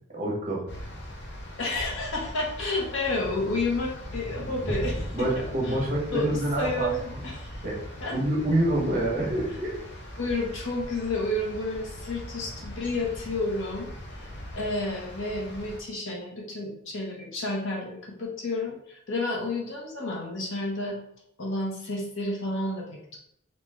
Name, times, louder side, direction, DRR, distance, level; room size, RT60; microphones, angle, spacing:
voice 1, 0.1-0.6 5.1-7.2 7.6-7.8 8.1-9.8, right 1 dB, 40° right, -3 dB, 1.2 m, -27 dB
sound 1, 0.7-15.8, equal, 60° left, 0.7 m, -40 dB
voice 2, 1.6-5.8 6.1-7.5 8.0-8.1 10.2-13.9 14.5-21.0 21.4-23.2, left 2 dB, 75° left, -2 dB, 1.0 m, -31 dB
sound 2, 4.1-10.6, equal, 5° right, 0.4 m, -40 dB
3.1 x 2.8 x 3.5 m, 0.71 s
head